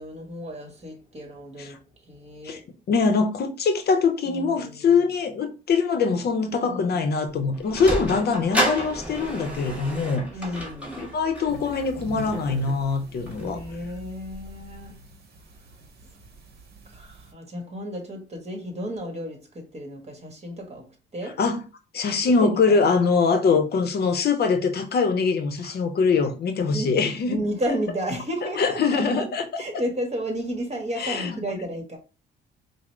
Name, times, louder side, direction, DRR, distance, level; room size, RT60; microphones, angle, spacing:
voice 1, 0.0-1.8 2.1-2.7 4.2-5.0 6.4-7.0 7.9-8.4 10.3-11.1 13.4-15.0 16.9-20.9 21.1-21.4 22.3-22.8 23.3-23.7 25.6-25.8 26.7-27.0 27.3-32.0, equal, 30° right, 1.3 m, -33 dB
voice 2, 2.9-10.3 11.0-13.6 21.4-21.6 21.9-27.4 28.6-29.4 31.0-31.4, left 5 dB, 55° left, 0.7 m, -23 dB
Sliding door, 7.3-13.8, right 1 dB, 5° right, 1.5 m, -32 dB
sound 1, 11.5-17.3, right 3 dB, 55° right, 0.9 m, -44 dB
4.9 x 2.0 x 3.1 m
cardioid pair, 90°, 20 cm